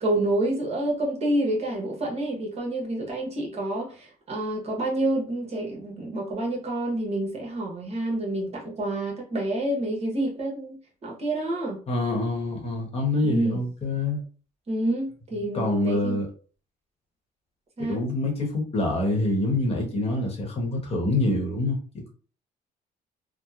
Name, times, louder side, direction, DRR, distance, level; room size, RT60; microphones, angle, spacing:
voice 1, 0.0-11.8 13.2-13.6 14.7-16.2 17.8-18.0, right 1 dB, 40° right, 1.0 m, -28 dB
voice 2, 11.9-14.2 15.5-16.3 17.9-22.1, left 2 dB, 35° left, 1.0 m, -26 dB
2.9 x 2.0 x 2.4 m
cardioid pair, 110°, 17 cm